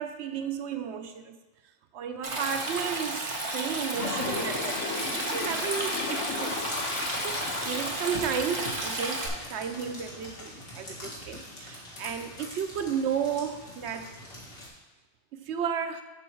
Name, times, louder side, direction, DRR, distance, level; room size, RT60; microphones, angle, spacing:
voice 1, 0.0-1.4 1.9-6.6 7.2-14.1 15.3-16.0, right 7 dB, 70° right, 7 dB, 0.9 m, -33 dB
Stream, 2.2-9.3, right 2 dB, 35° right, 1.0 m, -33 dB
Toilet flush, 3.9-8.3, left 4 dB, 80° left, 1.1 m, -34 dB
sound 1, 6.5-14.7, left 1 dB, 50° left, 2.0 m, -43 dB
6.9 x 5.1 x 4.5 m, 1.2 s
omnidirectional pair, 1.2 m